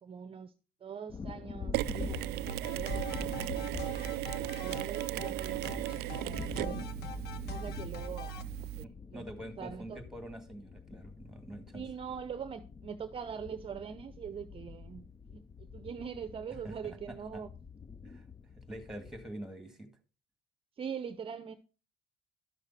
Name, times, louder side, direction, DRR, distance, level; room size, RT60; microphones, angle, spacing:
voice 1, 0.0-0.5 0.8-6.8 7.5-9.3 9.6-10.0 11.7-17.5 20.8-21.6, right 7 dB, 35° right, 0.7 m, -43 dB
sound 1, 1.1-19.3, left 5 dB, 20° left, 0.4 m, -46 dB
Mechanisms, 1.7-8.8, right 17 dB, 75° right, 0.4 m, -36 dB
sound 2, 2.4-8.4, left 6 dB, 85° left, 1.0 m, -45 dB
voice 2, 8.8-11.9 16.6-17.0 17.3-17.4 18.0-18.3 18.6-19.9, right 1 dB, ahead, 2.1 m, -45 dB
12.5 x 6.6 x 4.1 m
cardioid pair, 110°, 17 cm